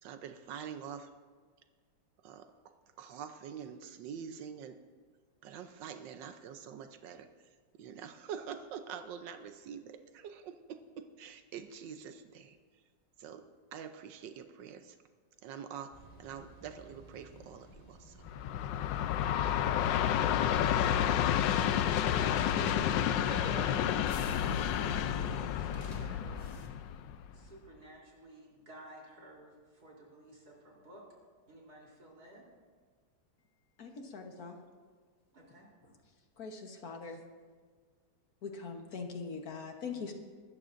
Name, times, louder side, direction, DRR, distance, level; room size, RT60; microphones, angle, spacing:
voice 1, 0.0-1.1 2.2-4.8 5.4-7.3 7.8-12.6 13.2-13.4 13.7-15.0 15.4-15.9 16.2-18.2, right 7 dB, 85° right, 8 dB, 1.4 m, -45 dB
sound 1, 15.9-26.7, left 1 dB, 25° left, 1.1 m, -50 dB
Train, 18.3-27.5, left 10 dB, 85° left, 1.3 m, -30 dB
voice 2, 20.9-23.7 24.1-26.6 27.3-31.1 31.4-32.4 35.3-35.7, right 1 dB, 60° right, -3 dB, 4.0 m, -52 dB
voice 3, 33.8-34.5 36.4-37.2 38.4-40.1, left 5 dB, 60° left, 4 dB, 1.6 m, -42 dB
23.5 x 13.0 x 2.6 m, 1.6 s
omnidirectional pair, 1.9 m